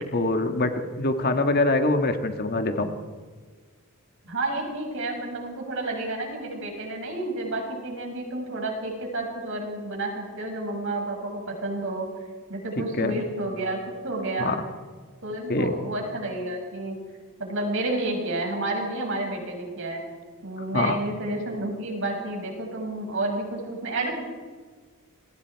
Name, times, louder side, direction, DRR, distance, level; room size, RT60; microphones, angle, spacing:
voice 1, 0.0-2.9 13.0-13.2 14.4-14.6 15.5-15.7 20.7-21.0, left 2 dB, 45° left, 7 dB, 1.7 m, -24 dB
voice 2, 4.2-12.1 12.5-13.8 14.0-14.6 15.2-17.0 17.4-20.0 20.4-24.1, right 2 dB, 60° right, 1 dB, 6.8 m, -30 dB
28.0 x 21.5 x 4.7 m, 1.5 s
head